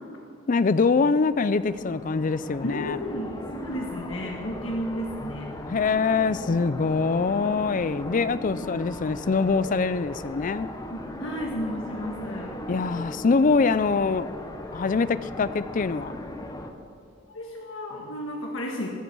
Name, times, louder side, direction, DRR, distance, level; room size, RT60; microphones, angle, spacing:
voice 1, 0.5-3.0 5.6-10.7 12.7-14.3 14.7-16.1, left 4 dB, 40° left, 15 dB, 0.4 m, -24 dB
sound 1, 0.8-16.7, left 1 dB, 20° left, 1.0 m, -38 dB
voice 2, 2.6-5.5 10.9-12.6 17.3-18.9, equal, 85° left, -1 dB, 1.6 m, -33 dB
22.0 x 8.4 x 6.1 m, 2.3 s
head